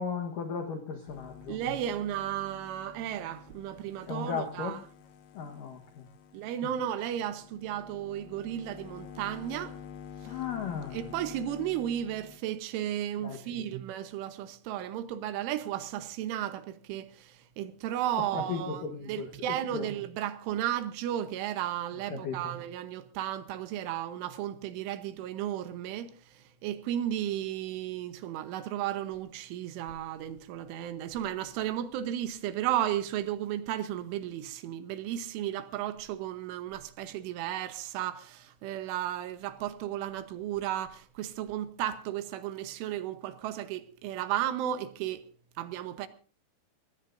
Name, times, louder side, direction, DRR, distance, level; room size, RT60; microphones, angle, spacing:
voice 1, 0.0-1.6 4.1-4.8 5.3-6.1 6.6-6.7 10.2-11.1 13.2-13.7 18.3-19.9 22.1-22.5, left 6 dB, 85° left, 1.8 m, -36 dB
sound 1, 1.1-12.4, left 7 dB, 65° left, 2.8 m, -49 dB
voice 2, 1.5-4.8 6.3-9.8 10.2-10.4 10.9-45.3 45.6-46.1, right 11 dB, 75° right, 3.3 m, -34 dB
23.0 x 19.0 x 2.6 m
omnidirectional pair, 6.0 m